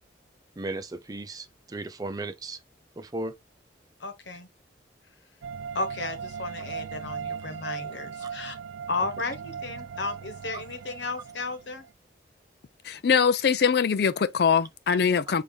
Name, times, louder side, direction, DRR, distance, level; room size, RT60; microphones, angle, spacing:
voice 1, 0.6-2.6 3.0-3.3 10.5-10.6, right 2 dB, 20° right, 0.4 m, -35 dB
voice 2, 4.0-4.5 5.7-8.6 8.9-11.9, left 3 dB, 75° left, 1.1 m, -34 dB
sound 1, 5.4-11.9, right 6 dB, 85° right, 0.3 m, -38 dB
voice 3, 12.8-15.4, left 6 dB, 60° left, 0.4 m, -22 dB
4.8 x 2.7 x 3.5 m
head